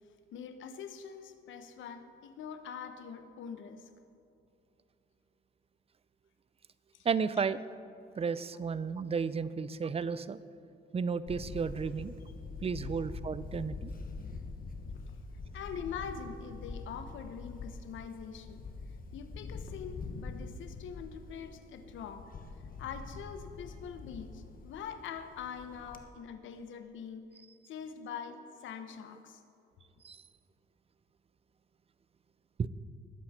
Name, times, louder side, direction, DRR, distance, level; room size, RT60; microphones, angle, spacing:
voice 1, 0.3-3.9 6.9-7.1 15.5-18.7 19.1-22.3 22.8-27.3 27.7-29.4, left 7 dB, 75° left, 8 dB, 1.0 m, -44 dB
voice 2, 7.0-7.6 8.2-10.4 10.9-12.2 12.6-13.9 30.0-30.2 32.6-32.7, right 5 dB, 30° right, 15 dB, 0.5 m, -33 dB
Camera, 11.3-26.0, left 4 dB, 45° left, 1.2 m, -44 dB
20.5 x 7.9 x 4.3 m, 2.8 s
cardioid pair, 90°, 20 cm